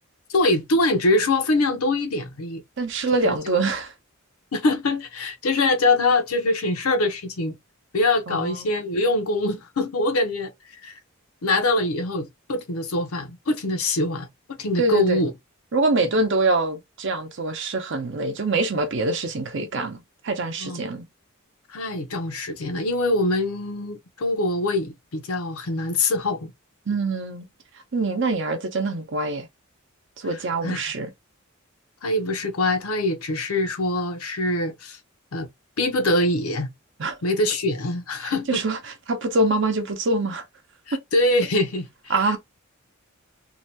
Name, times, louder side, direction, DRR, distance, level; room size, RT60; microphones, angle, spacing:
voice 1, 0.3-2.6 3.2-3.6 4.5-7.6 7.9-10.5 10.8-10.9 11.4-15.3 20.6-20.8 21.7-26.5 30.3-30.9 32.0-35.0 35.3-35.5 35.8-36.7 37.2-38.6 40.9-42.4, left 2 dB, 90° left, 0.7 m, -24 dB
voice 2, 2.8-3.9 8.3-8.7 14.8-15.2 15.7-21.0 26.9-27.5 27.9-29.5 30.2-31.1 37.0-37.2 38.2-40.4 42.1-42.4, right 2 dB, 60° right, 0.7 m, -24 dB
2.8 x 2.2 x 2.7 m
head